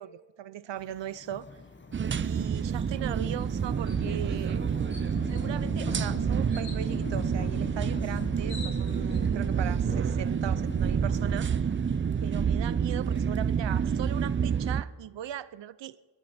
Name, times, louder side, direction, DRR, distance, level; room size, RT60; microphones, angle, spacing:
voice 1, 0.0-1.5 2.2-4.6 5.2-11.5 12.2-16.0, right 11 dB, 75° right, 0.6 m, -39 dB
sound 1, 0.8-14.4, left 4 dB, 25° left, 0.9 m, -43 dB
sound 2, 1.9-14.8, right 7 dB, 30° right, 0.4 m, -28 dB
sound 3, 3.9-4.1 4.5-4.6 4.9-5.4 6.5-6.8 8.0-8.1 8.3-9.2, left 3 dB, 85° left, 3.1 m, -45 dB
27.5 x 12.0 x 4.3 m
wide cardioid pair, 130°, 44 cm